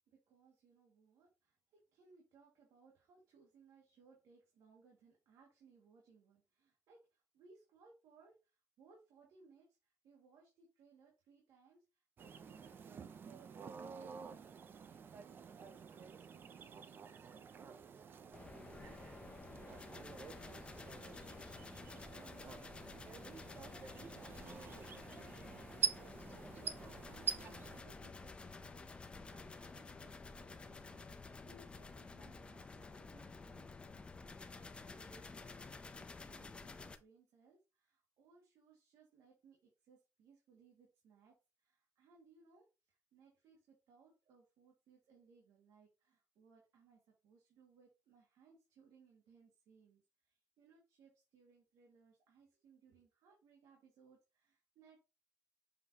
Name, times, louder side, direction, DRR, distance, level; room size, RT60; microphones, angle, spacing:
voice 1, 0.0-14.4 14.7-55.0, right 4 dB, 70° right, -1 dB, 2.1 m, -67 dB
sound 1, 12.2-27.8, right 7 dB, 35° right, 0.6 m, -47 dB
sound 2, 18.3-37.0, left 3 dB, 15° left, 0.6 m, -52 dB
7.3 x 4.8 x 2.9 m, 0.29 s
cardioid pair, 160°, 6 cm